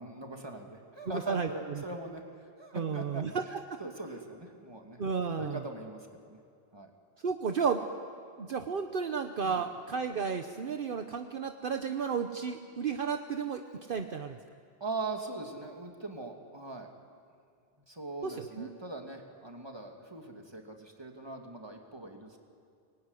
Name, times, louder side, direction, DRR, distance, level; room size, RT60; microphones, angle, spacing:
voice 1, 0.0-2.2 2.6-3.5 3.8-5.0 5.3-6.4 6.7-6.9 9.4-9.7 14.8-16.9 17.7-22.4, right 2 dB, 25° right, 2 dB, 2.5 m, -41 dB
voice 2, 1.1-1.5 2.7-3.8 5.0-5.6 7.2-7.8 8.4-13.6 13.9-14.4 18.2-18.7, right 6 dB, 60° right, 7 dB, 1.1 m, -33 dB
25.0 x 21.0 x 9.8 m, 2.3 s
omnidirectional pair, 1.0 m